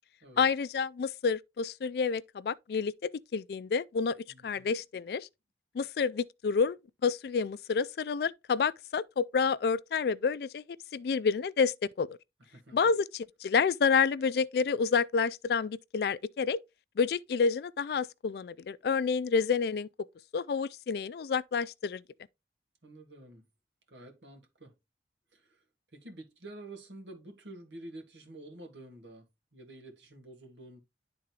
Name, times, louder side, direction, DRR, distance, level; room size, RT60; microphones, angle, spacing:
voice 1, 0.4-5.3 5.7-10.6 10.9-12.2 12.7-16.6 17.0-19.9 20.3-22.0, left 5 dB, 60° left, 0.3 m, -29 dB
voice 2, 4.3-4.8 12.5-12.8 22.8-23.4 23.9-24.7 25.3-25.7 25.9-30.8, right 1 dB, 85° right, 1.8 m, -49 dB
11.0 x 3.8 x 2.8 m
head